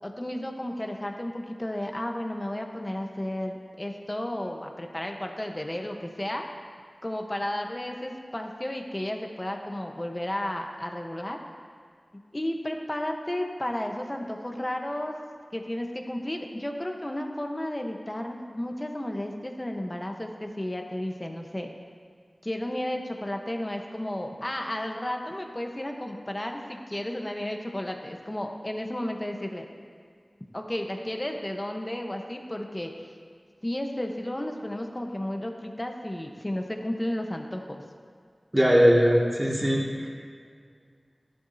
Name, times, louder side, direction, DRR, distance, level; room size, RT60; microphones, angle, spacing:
voice 1, 0.0-6.4 7.0-11.4 12.3-15.1 15.5-21.7 22.4-29.7 30.5-32.9 33.6-37.8, left 1 dB, 25° left, 3 dB, 1.1 m, -33 dB
voice 2, 38.5-40.1, equal, 15° right, -4 dB, 2.3 m, -20 dB
14.0 x 12.0 x 2.8 m, 2.1 s
wide cardioid pair, 50°, 0 cm